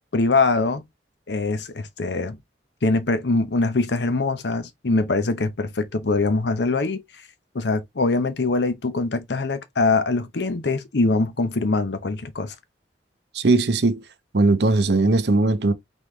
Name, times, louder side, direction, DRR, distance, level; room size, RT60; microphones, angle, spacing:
voice 1, 0.1-0.9 1.3-2.4 2.8-7.0 7.5-12.5, left 3 dB, 75° left, 0.8 m, -23 dB
voice 2, 13.3-14.0 14.3-15.7, right 2 dB, 70° right, 0.7 m, -19 dB
4.0 x 3.6 x 3.2 m
head